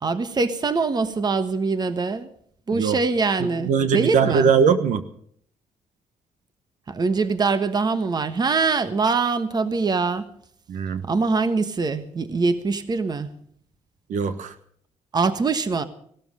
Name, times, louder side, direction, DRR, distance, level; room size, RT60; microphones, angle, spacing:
voice 1, 0.0-2.3 2.7-4.5 6.9-10.2 11.1-13.3 15.1-15.8, right 4 dB, 30° right, 11 dB, 1.3 m, -23 dB
voice 2, 3.4-5.0 10.7-11.1 14.1-14.5, right 6 dB, 75° right, 10 dB, 1.3 m, -21 dB
17.5 x 13.0 x 6.4 m, 0.64 s
cardioid pair, 110°, 13 cm